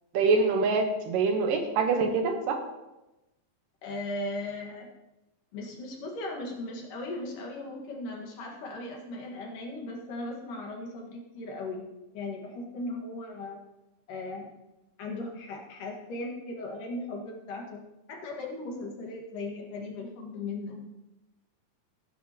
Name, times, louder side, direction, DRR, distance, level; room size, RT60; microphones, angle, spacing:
voice 1, 0.1-2.6, right 4 dB, 80° right, 4 dB, 2.9 m, -25 dB
voice 2, 3.8-4.9 5.5-11.9 12.1-13.6 14.1-14.5 15.0-17.8 18.1-20.8, left 2 dB, 70° left, 0 dB, 3.5 m, -37 dB
17.5 x 9.4 x 3.1 m, 0.99 s
omnidirectional pair, 3.9 m